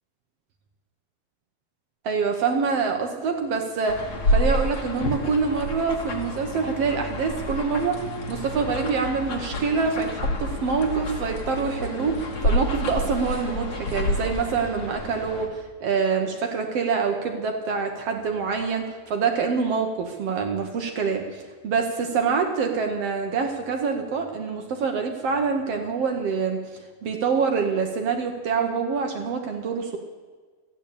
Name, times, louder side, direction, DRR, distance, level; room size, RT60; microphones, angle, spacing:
voice 1, 2.0-8.0 8.3-30.0, right 5 dB, 60° right, 4 dB, 1.8 m, -26 dB
sound 1, 3.9-15.5, left 1 dB, 40° left, 1.6 m, -29 dB
14.0 x 9.8 x 8.5 m, 1.4 s
omnidirectional pair, 3.7 m